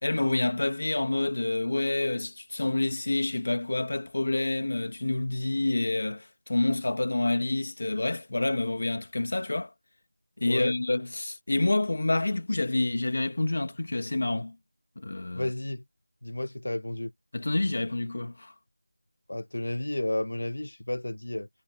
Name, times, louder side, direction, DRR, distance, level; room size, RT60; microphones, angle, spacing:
voice 1, 0.0-9.7 10.4-14.6 15.0-15.5 17.3-18.5, left 2 dB, 40° left, 2.4 m, -28 dB
voice 2, 10.5-10.8 15.3-15.8 16.2-17.1 19.3-21.5, left 1 dB, 65° left, 1.2 m, -32 dB
figure-of-eight pair, 180°, 0 cm